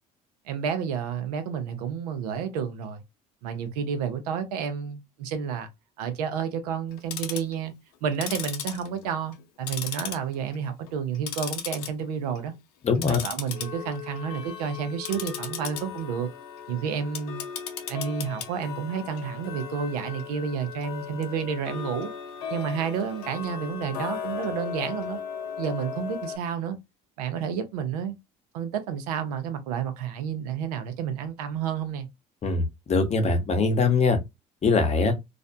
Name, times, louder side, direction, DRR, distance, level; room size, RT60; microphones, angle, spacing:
voice 1, 0.5-3.0 3.4-5.7 6.0-7.7 8.0-12.5 13.1-16.3 16.7-17.4 17.9-22.1 22.5-25.2 25.6-26.8 27.2-28.1 28.5-32.1, right 7 dB, 90° right, 0.6 m, -30 dB
Tick-tock, 6.9-7.5 8.1-9.4 9.7-10.5 10.9-11.9 12.3-12.5 12.9-26.4, left 8 dB, 85° left, 0.5 m, -36 dB
voice 2, 12.8-13.2 32.4-32.6 32.9-34.2 34.6-35.1, left 4 dB, 35° left, 0.8 m, -22 dB
2.5 x 2.1 x 2.6 m
supercardioid pair, 80°, 19 cm